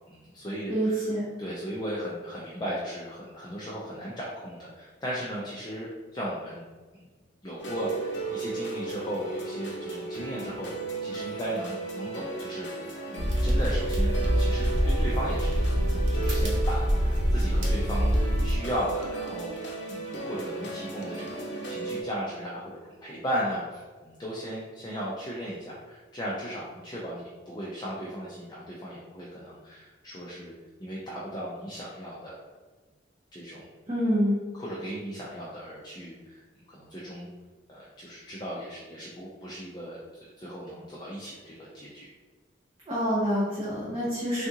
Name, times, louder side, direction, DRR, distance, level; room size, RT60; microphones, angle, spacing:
voice 1, 0.1-1.1 1.4-6.6 6.9-7.0 7.4-10.7 11.0-18.1 18.4-19.5 19.9-30.5 30.8-32.4 33.3-33.6 34.5-36.4 36.7-37.3 37.7-40.0 40.4-42.1, equal, 20° left, -6 dB, 0.4 m, -36 dB
voice 2, 0.7-1.3 33.9-34.4 42.9-44.5, equal, 30° right, -9 dB, 0.7 m, -26 dB
sound 1, 7.6-22.0, right 3 dB, 70° left, 0.6 m, -35 dB
sound 2, 13.2-18.6, equal, 90° right, 0.8 m, -25 dB
3.6 x 2.4 x 2.7 m, 1.4 s
head